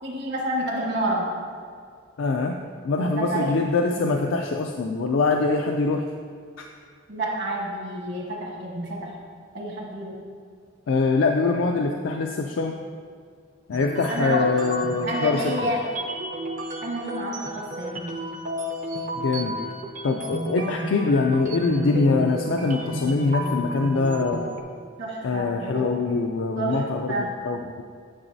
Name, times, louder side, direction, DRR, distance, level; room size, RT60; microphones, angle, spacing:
voice 1, 0.0-1.3 3.0-3.6 3.8-3.9 7.1-9.1 9.5-10.2 14.1-14.4 15.0-15.9 16.8-18.1 20.6-20.7 25.0-25.9 26.6-27.3, right 1 dB, 55° right, -2 dB, 1.4 m, -29 dB
voice 2, 2.2-6.1 6.6-6.7 10.9-12.8 13.7-15.5 19.2-19.6 20.0-24.5 25.2-27.8, left 3 dB, 70° left, 3 dB, 0.4 m, -23 dB
sound 1, 13.7-24.6, right 1 dB, 40° right, 0.6 m, -32 dB
8.8 x 7.2 x 2.7 m, 2.1 s
head